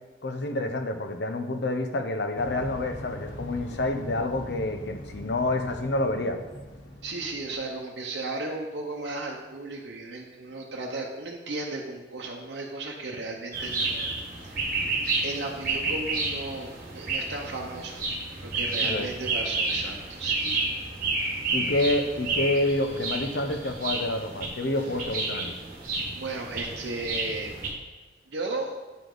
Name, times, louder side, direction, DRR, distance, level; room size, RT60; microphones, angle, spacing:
voice 1, 0.2-6.4 18.8-19.1 21.5-25.5, left 2 dB, 65° left, 6 dB, 0.7 m, -28 dB
sound 1, 2.3-7.7, equal, 90° left, 1.1 m, -41 dB
voice 2, 7.0-14.1 14.4-14.9 15.2-18.1 18.4-20.7 26.1-27.5 28.3-28.8, right 2 dB, 65° right, -2 dB, 0.8 m, -35 dB
sound 2, 13.5-27.7, right 3 dB, 50° right, 1.5 m, -31 dB
9.5 x 5.1 x 3.9 m, 1.2 s
head